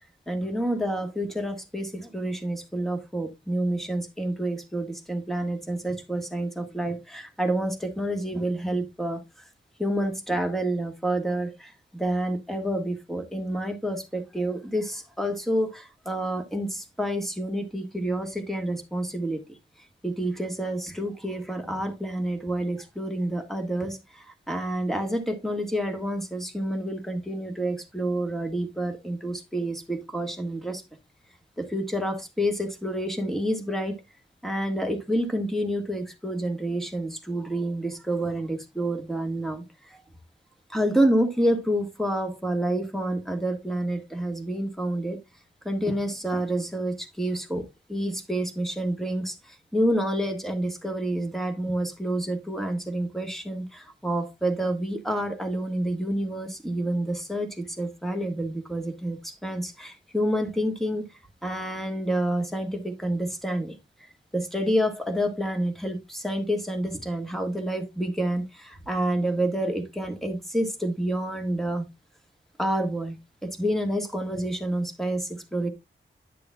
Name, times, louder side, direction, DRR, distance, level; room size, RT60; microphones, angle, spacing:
voice 1, 0.3-9.2 9.8-19.4 20.0-30.8 31.6-34.0 34.4-40.0 40.7-45.2 45.7-61.1 61.4-63.8 64.3-71.9 72.6-73.2 73.4-75.7, right 1 dB, ahead, 1.6 m, -28 dB
10.5 x 6.8 x 2.3 m
wide cardioid pair, 115°, 20 cm